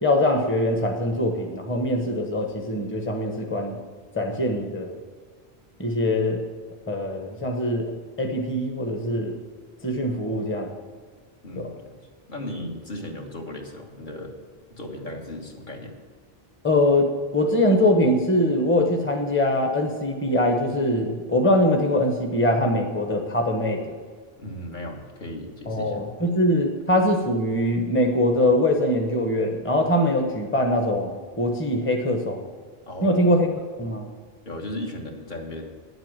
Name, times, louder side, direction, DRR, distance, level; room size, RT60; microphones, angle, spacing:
voice 1, 0.0-3.8 4.1-4.9 5.8-6.4 6.9-7.9 8.2-9.4 9.8-10.7 11.6-11.7 16.6-24.0 25.7-32.4 33.0-33.5 33.8-34.1, left 1 dB, 10° left, 3 dB, 1.0 m, -22 dB
voice 2, 11.4-12.0 12.3-14.4 14.7-16.0 24.4-26.0 32.9-33.3 34.5-35.7, left 1 dB, 50° left, 0 dB, 1.7 m, -36 dB
9.9 x 8.0 x 7.4 m, 1.5 s
omnidirectional pair, 1.1 m